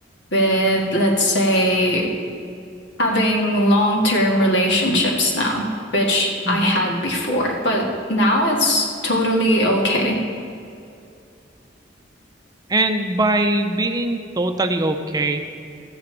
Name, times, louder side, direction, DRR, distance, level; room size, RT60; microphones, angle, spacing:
voice 1, 0.3-2.1 3.0-5.7 5.9-10.2, equal, 85° left, 0 dB, 1.7 m, -19 dB
voice 2, 12.7-15.4, right 2 dB, 20° right, 6 dB, 0.6 m, -21 dB
13.5 x 4.5 x 7.6 m, 2.5 s
head